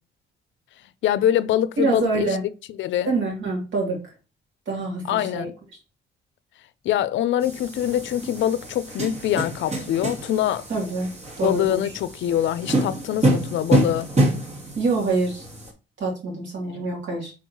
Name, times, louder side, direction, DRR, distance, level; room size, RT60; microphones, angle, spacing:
voice 1, 1.0-2.3 2.8-3.1 5.1-5.5 6.8-10.7 11.4-14.1, left 11 dB, 70° left, 0.5 m, -24 dB
voice 2, 1.8-2.4 3.1-4.0 4.7-5.5 10.7-11.1 11.4-11.9 14.8-15.4 16.0-17.3, right 3 dB, 70° right, 2.4 m, -25 dB
sound 1, 7.4-15.7, right 1 dB, 35° right, 1.6 m, -27 dB
4.4 x 4.0 x 2.8 m
cardioid pair, 90°, 20 cm